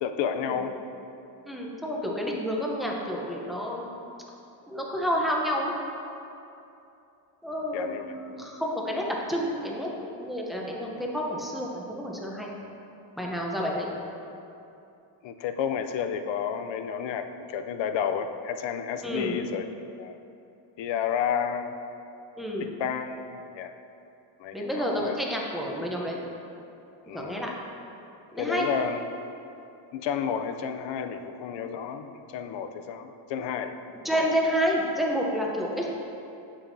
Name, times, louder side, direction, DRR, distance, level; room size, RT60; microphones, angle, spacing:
voice 1, 0.0-0.8 7.7-8.2 15.2-19.7 20.0-20.2 20.8-21.8 22.6-23.7 24.4-25.2 27.1-27.4 28.4-29.0 29.9-33.8, left 7 dB, 65° left, 8 dB, 0.6 m, -31 dB
voice 2, 1.4-4.1 4.7-5.7 7.4-12.5 13.2-13.9 19.0-19.4 22.4-22.7 24.5-26.2 27.1-27.5 28.3-28.7 34.0-35.9, equal, ahead, -2 dB, 0.7 m, -29 dB
8.6 x 7.2 x 2.7 m, 2.8 s
cardioid pair, 145°, 48 cm